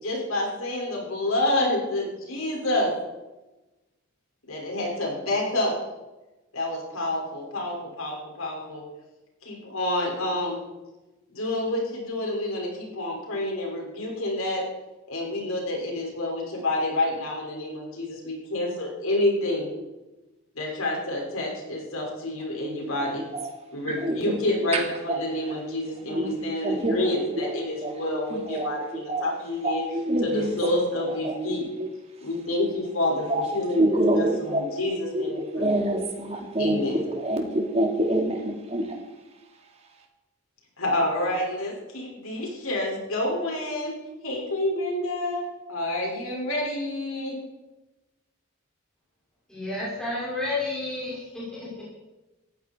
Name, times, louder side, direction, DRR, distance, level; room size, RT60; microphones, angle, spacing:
voice 1, 0.0-2.9 4.5-5.7 6.5-8.8 9.4-10.6 11.3-14.6 15.1-19.7 20.5-23.2 23.7-29.8 30.2-31.6 32.2-35.7 36.6-37.0 40.8-43.9 44.2-47.4, left 1 dB, 90° left, -1 dB, 6.3 m, -28 dB
voice 2, 22.7-23.5 23.9-24.8 25.1-25.2 25.8-26.4 26.6-27.0 27.4-27.5 27.8-28.7 28.9-29.2 29.6-30.6 31.1-31.9 32.6-32.7 33.3-33.4 33.7-34.6 35.1-39.0, right 1 dB, 30° right, 1 dB, 3.0 m, -27 dB
voice 3, 49.5-51.4, left 2 dB, 5° left, -9 dB, 6.0 m, -30 dB
18.0 x 15.5 x 4.8 m, 1.1 s
head